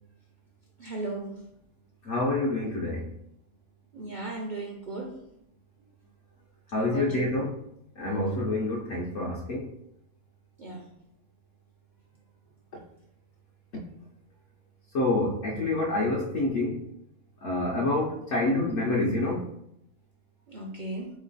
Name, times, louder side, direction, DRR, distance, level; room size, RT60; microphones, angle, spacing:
voice 1, 0.8-1.4 3.9-5.2 6.7-7.3 10.6-10.9 20.5-21.1, right 2 dB, 55° right, -2 dB, 0.5 m, -36 dB
voice 2, 2.0-3.1 6.7-7.6 8.0-9.7 12.7-12.8 14.9-16.8 17.4-19.5, left 2 dB, 60° left, -3 dB, 0.9 m, -27 dB
3.8 x 3.1 x 3.8 m, 0.77 s
omnidirectional pair, 1.5 m